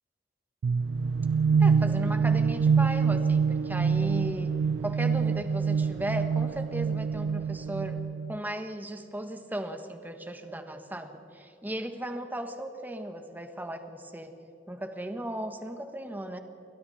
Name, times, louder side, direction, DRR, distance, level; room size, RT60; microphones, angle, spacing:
sound 1, 0.6-8.4, right 5 dB, 90° right, 0.4 m, -26 dB
voice 1, 1.6-8.0 8.3-14.3 14.7-16.4, right 1 dB, 10° right, 6 dB, 1.5 m, -36 dB
29.0 x 22.5 x 4.3 m, 3.0 s
head